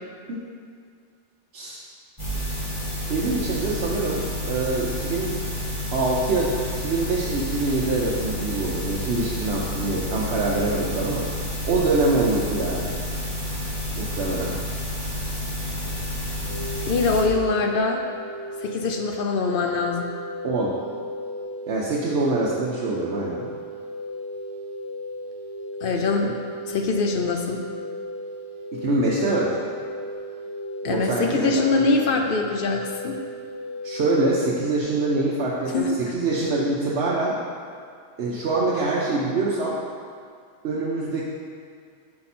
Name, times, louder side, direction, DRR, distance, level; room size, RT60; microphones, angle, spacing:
sound 1, 2.2-17.2, left 1 dB, 25° left, 1.4 m, -30 dB
voice 1, 3.1-5.3 5.9-11.3 11.7-12.9 14.0-14.5 20.4-20.7 21.7-23.5 28.8-29.6 30.9-31.9 33.8-37.4 38.2-39.8 40.6-41.2, right 2 dB, 65° right, -6 dB, 0.9 m, -24 dB
sound 2, 16.5-34.8, equal, 75° left, 1.2 m, -35 dB
voice 2, 16.9-18.0 18.6-20.1 25.8-26.4 26.7-27.6 30.8-33.2 35.7-35.9, left 3 dB, 60° left, 2 dB, 0.6 m, -23 dB
5.6 x 4.8 x 4.2 m, 2.3 s
omnidirectional pair, 1.2 m